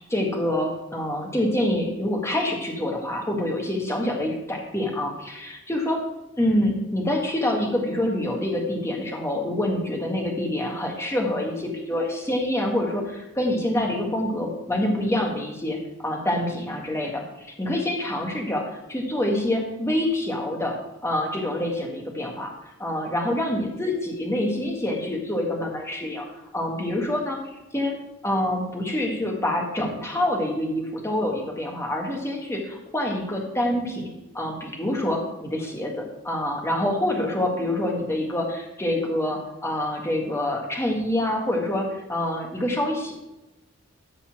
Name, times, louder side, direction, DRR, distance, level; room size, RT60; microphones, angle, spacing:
voice 1, 0.1-6.0 6.4-18.6 18.9-20.8 21.0-22.5 22.8-26.2 26.5-27.4 27.7-28.0 28.2-43.1, left 1 dB, 10° left, 0 dB, 1.8 m, -26 dB
13.0 x 4.4 x 7.4 m, 0.97 s
head